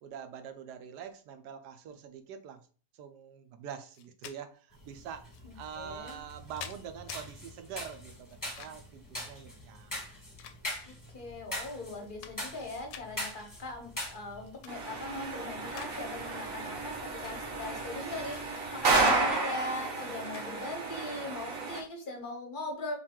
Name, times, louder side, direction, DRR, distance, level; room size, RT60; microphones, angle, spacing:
voice 1, 0.0-2.7 2.9-8.3 8.6-9.9, right 8 dB, 75° right, 8 dB, 1.2 m, -45 dB
sound 1, 3.9-4.4 5.3-5.4 6.2-7.2 8.3-8.9 9.9-11.0 11.5-11.6 11.9-12.6 12.9-13.1 14.4-14.8 15.2-16.0 16.3-16.5 17.3-18.4 18.9-19.2 20.3-20.5, left 9 dB, 85° left, 1.2 m, -47 dB
sound 2, 4.7-19.3, left 1 dB, 15° left, 0.9 m, -44 dB
voice 2, 5.4-6.2 10.9-22.9, left 2 dB, 45° left, 3 dB, 0.7 m, -40 dB
sound 3, 14.7-21.8, right 3 dB, 60° right, 1.1 m, -32 dB
5.5 x 2.4 x 3.6 m, 0.40 s
omnidirectional pair, 1.8 m